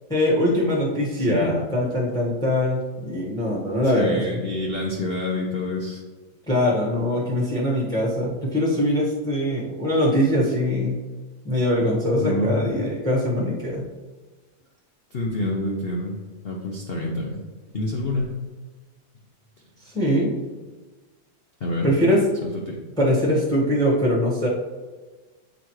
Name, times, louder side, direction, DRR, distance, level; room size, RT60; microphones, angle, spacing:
voice 1, 0.1-4.4 6.5-11.0 11.4-13.8 19.9-20.3 21.8-22.2 23.0-24.5, left 1 dB, 5° left, -4 dB, 1.1 m, -22 dB
voice 2, 1.2-1.5 3.9-6.0 12.2-12.7 15.1-16.1 16.4-17.4 17.7-18.4 21.6-21.9 22.7-22.8, left 1 dB, 75° left, -1 dB, 0.5 m, -27 dB
8.2 x 4.0 x 3.1 m, 1.3 s
omnidirectional pair, 2.0 m